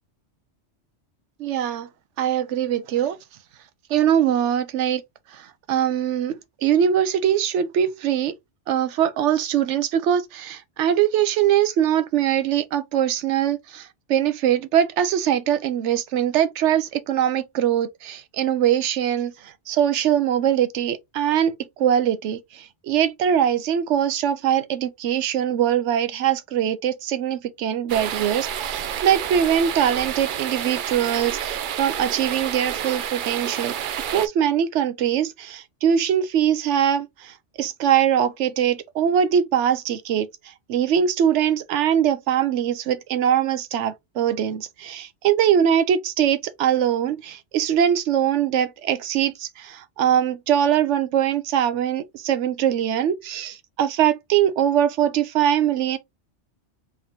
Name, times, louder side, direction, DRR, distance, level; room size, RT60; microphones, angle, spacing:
voice 1, 1.4-1.9 2.2-3.2 3.9-5.0 5.3-8.3 8.7-33.7 34.1-56.0, right 9 dB, 80° right, 0.9 m, -22 dB
sound 1, 27.9-34.3, right 9 dB, 60° right, 0.5 m, -29 dB
3.6 x 2.7 x 3.6 m
omnidirectional pair, 1.2 m